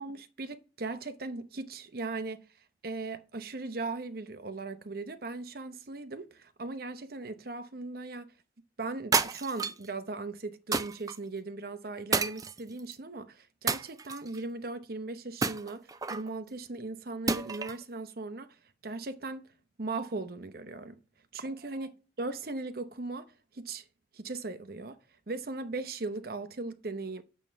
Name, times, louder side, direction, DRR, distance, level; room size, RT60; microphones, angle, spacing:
voice 1, 0.0-2.5 2.8-8.3 8.8-18.5 18.8-19.5 19.8-21.0 21.3-21.9 22.2-23.3 23.5-23.8 24.1-25.0 25.3-27.2, right 3 dB, 55° right, 0.8 m, -38 dB
sound 1, 9.1-9.9 10.7-11.2 12.1-12.9 13.7-14.4 15.4-16.3 17.3-17.8, right 4 dB, 20° right, 0.4 m, -30 dB
9.4 x 7.4 x 4.5 m
head